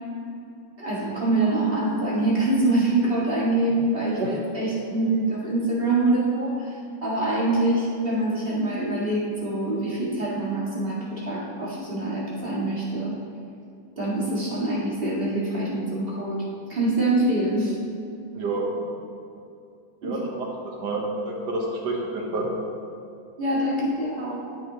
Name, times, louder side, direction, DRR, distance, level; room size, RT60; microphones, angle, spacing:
voice 1, 0.8-13.1 14.0-17.8 20.0-20.3 23.4-24.4, right 2 dB, 30° right, -7 dB, 2.1 m, -25 dB
voice 2, 18.3-18.7 20.0-20.5 20.8-22.5, right 2 dB, 65° right, -1 dB, 1.9 m, -28 dB
13.0 x 6.0 x 3.0 m, 2.6 s
omnidirectional pair, 2.0 m